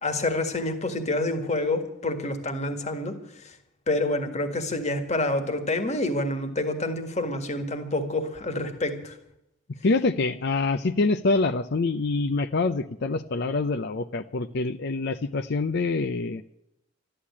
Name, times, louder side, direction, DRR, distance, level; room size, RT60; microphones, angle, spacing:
voice 1, 0.0-3.2 3.9-9.1, left 2 dB, 35° left, 8 dB, 1.7 m, -27 dB
voice 2, 9.8-16.4, left 3 dB, 55° left, 11 dB, 0.5 m, -25 dB
13.0 x 11.5 x 8.5 m, 0.82 s
head